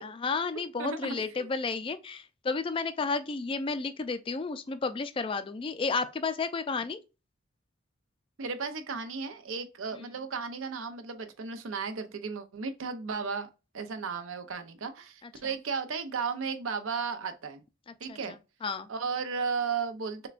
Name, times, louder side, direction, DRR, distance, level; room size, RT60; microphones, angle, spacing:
voice 1, 0.0-7.0 17.9-18.2 18.6-18.9, left 4 dB, 25° left, 0.3 m, -32 dB
voice 2, 0.8-1.5 8.4-13.5 13.7-17.6 18.0-18.4 18.9-20.3, right 5 dB, 90° right, 0.6 m, -34 dB
6.6 x 2.2 x 2.4 m
head